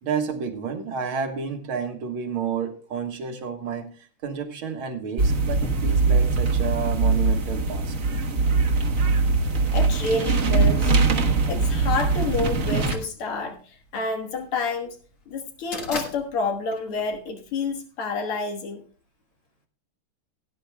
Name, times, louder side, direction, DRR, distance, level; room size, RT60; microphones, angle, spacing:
voice 1, 0.0-7.9, right 6 dB, 70° right, 5 dB, 2.3 m, -30 dB
sound 1, 5.2-12.9, right 3 dB, 45° right, 1.4 m, -22 dB
voice 2, 9.7-11.0 11.5-13.6 13.9-15.0 15.3-18.8, left 4 dB, 80° left, 4 dB, 2.4 m, -28 dB
sound 2, 11.6-17.8, left 3 dB, 40° left, 1.8 m, -39 dB
18.0 x 10.0 x 2.2 m, 0.39 s
omnidirectional pair, 2.4 m